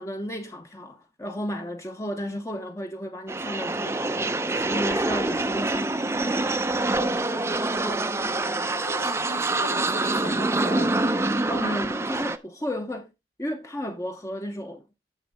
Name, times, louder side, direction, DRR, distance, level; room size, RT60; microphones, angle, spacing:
voice 1, 0.0-4.1 4.5-6.4 11.5-13.1 13.4-14.9, equal, 15° left, 0.7 m, -33 dB
sound 1, 3.3-12.4, right 2 dB, 15° right, 0.5 m, -26 dB
voice 2, 7.0-8.1 8.7-11.0, left 3 dB, 55° left, 0.8 m, -39 dB
9.8 x 7.0 x 3.4 m
head